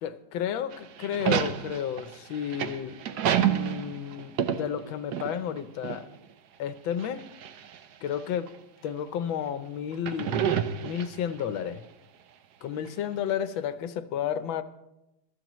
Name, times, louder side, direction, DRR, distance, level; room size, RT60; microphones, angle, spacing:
voice 1, 0.0-3.0 3.4-6.1 6.6-7.2 8.0-8.5 8.8-11.8 12.6-14.6, left 9 dB, 75° left, 12 dB, 1.5 m, -32 dB
sound 1, 0.7-5.6 5.8-6.0 7.0-7.8 8.5-8.6 9.9-11.4, right 9 dB, 65° right, 1.1 m, -28 dB
22.5 x 13.5 x 3.0 m, 0.91 s
omnidirectional pair, 2.2 m